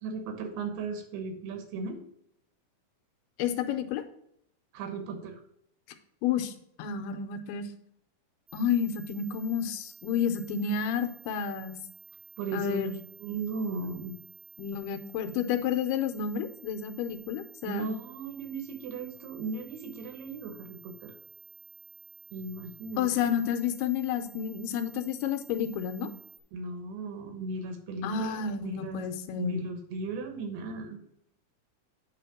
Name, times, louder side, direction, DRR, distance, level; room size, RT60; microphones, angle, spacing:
voice 1, 0.0-2.0 4.7-5.4 12.4-14.2 17.6-21.1 22.3-23.1 26.5-29.1 29.3-31.0, right 3 dB, 85° right, 6 dB, 3.2 m, -36 dB
voice 2, 3.4-4.0 6.2-6.5 6.8-7.7 8.5-11.8 12.5-13.0 14.6-17.9 23.0-26.1 28.0-29.6, left 8 dB, 85° left, 7 dB, 2.7 m, -30 dB
sound 1, 8.5-26.4, right 9 dB, 65° right, 1.2 m, -52 dB
8.9 x 3.5 x 5.9 m, 0.75 s
omnidirectional pair, 4.5 m